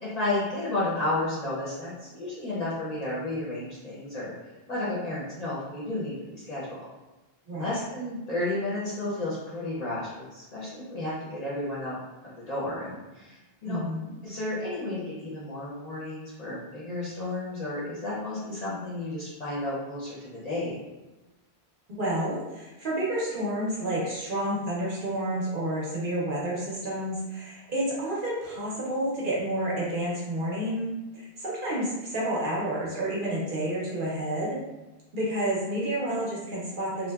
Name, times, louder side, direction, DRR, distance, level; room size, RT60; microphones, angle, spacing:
voice 1, 0.0-4.3 4.7-6.8 7.5-12.0 12.3-13.8 14.2-20.8, left 2 dB, 45° left, -8 dB, 0.6 m, -32 dB
voice 2, 13.7-14.1 21.9-34.6 35.1-37.1, right 1 dB, 55° right, -6 dB, 0.7 m, -30 dB
2.8 x 2.1 x 2.2 m, 1.1 s
omnidirectional pair, 1.1 m